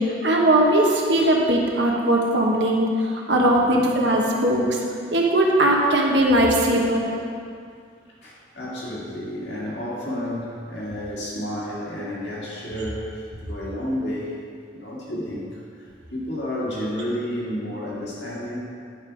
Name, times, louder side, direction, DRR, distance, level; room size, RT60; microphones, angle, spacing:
voice 1, 0.0-4.8 5.1-7.1, right 1 dB, 80° right, -1 dB, 1.3 m, -19 dB
voice 2, 3.3-4.1 6.4-6.8 8.2-14.3 14.7-18.6, equal, 70° left, -6 dB, 2.3 m, -31 dB
10.5 x 5.4 x 4.7 m, 2.2 s
head